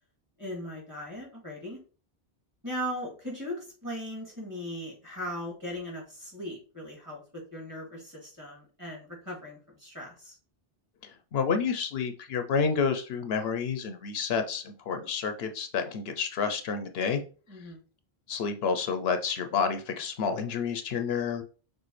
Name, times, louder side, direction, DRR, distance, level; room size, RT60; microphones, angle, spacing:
voice 1, 0.4-1.8 2.6-10.4 17.5-17.8, equal, 20° right, -3 dB, 2.2 m, -38 dB
voice 2, 11.0-17.2 18.3-21.4, left 6 dB, 75° left, 7 dB, 0.8 m, -29 dB
6.1 x 2.5 x 3.1 m, 0.36 s
omnidirectional pair, 1.0 m